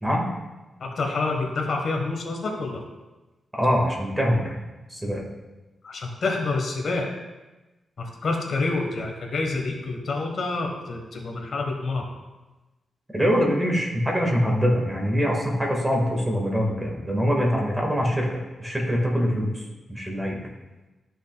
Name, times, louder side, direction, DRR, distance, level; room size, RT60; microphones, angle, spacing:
voice 1, 0.8-2.8 5.8-7.1 8.0-12.1, left 3 dB, 60° left, 2 dB, 1.4 m, -28 dB
voice 2, 3.5-4.6 4.9-5.2 13.1-20.4, equal, 10° right, -1 dB, 1.8 m, -24 dB
13.0 x 6.3 x 2.4 m, 1.1 s
cardioid pair, 105°, 0 cm